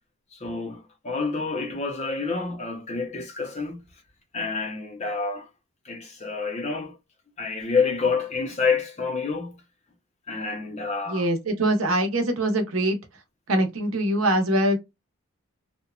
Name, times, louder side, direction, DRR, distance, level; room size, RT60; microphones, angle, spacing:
voice 1, 0.3-3.8 4.3-5.5 5.9-6.9 7.4-9.6 10.3-11.3, left 4 dB, 30° left, 0.5 m, -28 dB
voice 2, 11.1-13.0 13.5-14.8, right 1 dB, 65° right, 0.8 m, -23 dB
2.8 x 2.1 x 2.3 m
head